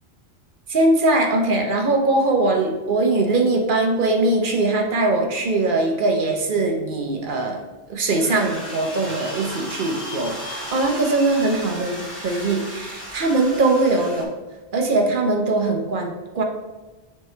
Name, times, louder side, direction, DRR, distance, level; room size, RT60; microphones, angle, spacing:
voice 1, 0.7-7.6 7.9-14.3 14.7-16.4, right 2 dB, 55° right, 3 dB, 1.0 m, -21 dB
sound 1, 8.2-14.2, equal, 45° left, 2.0 m, -35 dB
9.7 x 3.4 x 3.2 m, 1.2 s
omnidirectional pair, 1.1 m